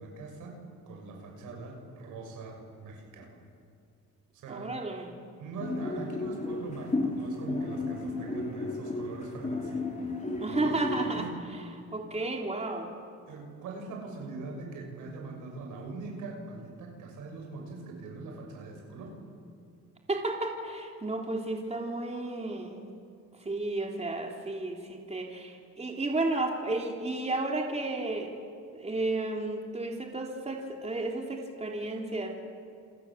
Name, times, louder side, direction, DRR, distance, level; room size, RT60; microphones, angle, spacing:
voice 1, 0.0-3.4 4.3-4.7 5.4-9.9 10.4-11.3 13.3-19.2, right 3 dB, 85° right, 2 dB, 6.7 m, -42 dB
voice 2, 4.5-5.1 10.4-11.3 11.7-12.9 20.1-22.9 23.4-28.3 28.7-32.3, right 2 dB, 20° right, 1 dB, 3.5 m, -32 dB
sound 1, 5.6-11.3, left 2 dB, 25° left, 4.8 m, -34 dB
28.0 x 27.5 x 7.6 m, 2.4 s
cardioid pair, 90°, 30 cm